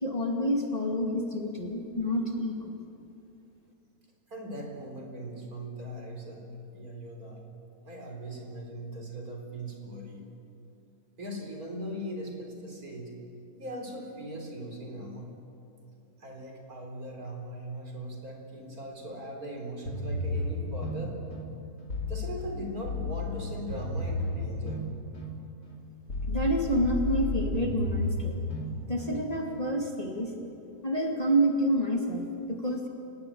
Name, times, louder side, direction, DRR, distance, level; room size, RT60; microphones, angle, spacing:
voice 1, 0.0-2.7 26.3-28.4 28.9-30.3 30.8-32.9, equal, 20° left, 1 dB, 2.4 m, -28 dB
voice 2, 4.3-6.5 6.7-7.5 7.8-10.2 11.2-13.2 13.6-15.4 16.2-21.2 22.1-24.9, right 1 dB, 60° right, 2 dB, 4.5 m, -39 dB
sound 1, 19.9-29.6, left 1 dB, 70° left, 3.4 m, -33 dB
29.5 x 17.5 x 8.7 m, 2.8 s
omnidirectional pair, 1.8 m